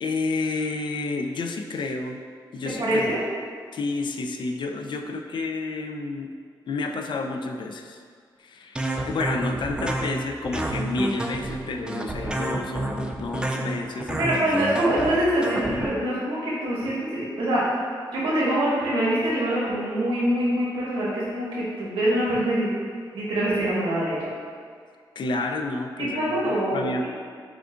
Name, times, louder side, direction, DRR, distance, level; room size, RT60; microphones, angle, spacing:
voice 1, 0.0-2.2 2.5-3.2 3.7-6.3 6.7-8.0 8.4-14.6 25.2-26.4 26.7-27.1, left 3 dB, 60° left, 4 dB, 0.4 m, -30 dB
voice 2, 2.6-3.2 14.2-17.6 18.1-22.7 23.1-24.3 26.0-27.1, right 1 dB, 90° right, -8 dB, 1.3 m, -24 dB
sound 1, 8.8-15.9, right 1 dB, 10° right, 0.3 m, -29 dB
6.2 x 2.4 x 2.5 m, 2.1 s
cardioid pair, 70°, 9 cm